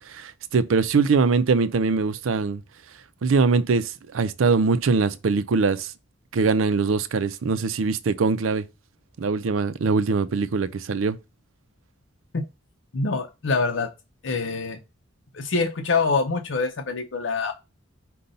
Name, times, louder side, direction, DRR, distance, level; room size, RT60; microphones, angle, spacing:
voice 1, 0.5-2.6 3.2-3.8 4.1-5.9 6.3-8.6 9.2-11.2, right 4 dB, 85° right, 0.5 m, -22 dB
voice 2, 12.9-13.9 14.2-14.8 15.3-17.5, left 4 dB, 65° left, 0.6 m, -25 dB
5.4 x 2.2 x 3.8 m
head